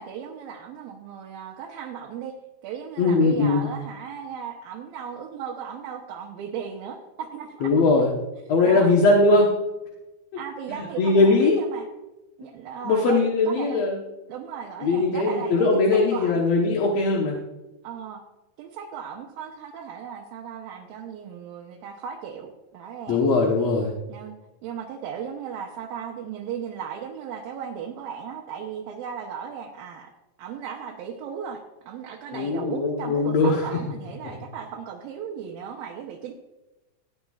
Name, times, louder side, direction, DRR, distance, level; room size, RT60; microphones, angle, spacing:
voice 1, 0.0-2.4 2.6-7.7 8.6-8.9 10.4-11.9 12.4-13.8 14.3-16.4 17.8-18.2 18.6-23.2 24.1-24.3 24.6-30.1 30.4-36.3, right 7 dB, 85° right, -1 dB, 2.8 m, -36 dB
voice 2, 3.0-3.7 7.6-8.1 8.5-9.5 11.0-11.6 12.8-14.0 14.8-17.4 23.1-23.9 32.3-33.6, left 3 dB, 60° left, -2 dB, 2.0 m, -20 dB
18.0 x 10.0 x 2.4 m, 1.0 s
omnidirectional pair, 4.0 m